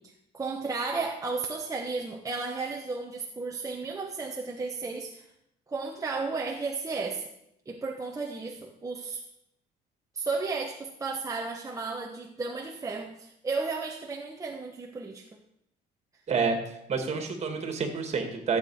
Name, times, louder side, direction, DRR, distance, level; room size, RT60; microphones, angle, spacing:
voice 1, 0.0-5.3 5.7-7.3 7.7-9.2 10.1-15.3, right 4 dB, 20° right, 1 dB, 1.1 m, -33 dB
voice 2, 16.3-18.6, right 5 dB, 40° right, 5 dB, 2.3 m, -29 dB
14.5 x 8.2 x 5.0 m, 0.80 s
cardioid pair, 110°, 17 cm